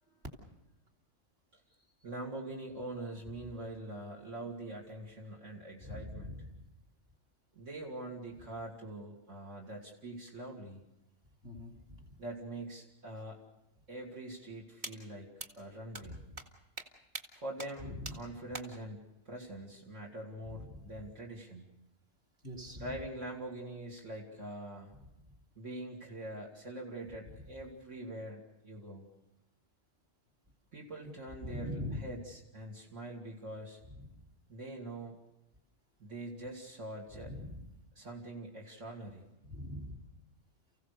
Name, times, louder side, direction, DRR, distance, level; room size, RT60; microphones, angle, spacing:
voice 1, 2.0-6.4 7.5-10.8 12.2-13.4 13.9-16.2 17.3-21.6 22.7-24.9 25.5-29.1 30.7-33.8 34.5-35.2 36.0-37.3 37.9-39.3, right 1 dB, 70° right, -3 dB, 3.0 m, -44 dB
voice 2, 5.8-6.5 11.4-12.2 16.1-16.2 17.8-18.2 20.5-20.9 22.4-22.9 31.4-32.1 33.9-34.2 37.2-37.6 39.5-40.0, left 1 dB, 55° right, 0 dB, 3.3 m, -42 dB
sound 1, 14.8-14.9 15.4-15.5 15.9-16.0 16.4-16.5 16.8-16.9 17.1-17.2 17.6-17.7 18.1-18.2 18.5-18.6, right 2 dB, 35° right, 2.0 m, -41 dB
30.0 x 16.0 x 6.7 m, 0.93 s
omnidirectional pair, 1.3 m